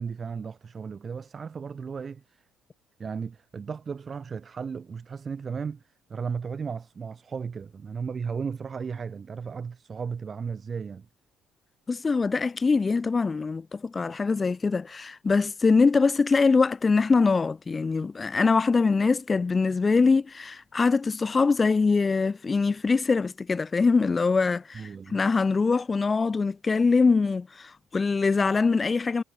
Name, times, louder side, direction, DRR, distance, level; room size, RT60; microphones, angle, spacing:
voice 1, 0.0-2.4 3.0-11.1 24.7-25.2, right 6 dB, 30° right, 5.2 m, -35 dB
voice 2, 11.9-29.2, left 4 dB, 25° left, 0.7 m, -23 dB
cardioid pair, 125°, 0 cm